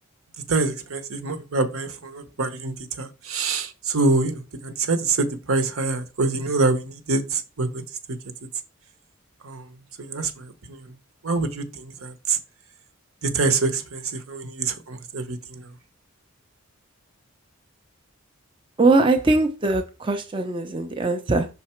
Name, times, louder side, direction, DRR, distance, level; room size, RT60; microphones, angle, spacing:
voice 1, 0.5-7.8 9.4-9.6 10.0-10.9 11.2-12.4 13.2-15.7, right 3 dB, 75° right, 0.9 m, -25 dB
voice 2, 18.8-21.5, right 3 dB, 25° right, 0.5 m, -21 dB
5.7 x 4.0 x 4.4 m
head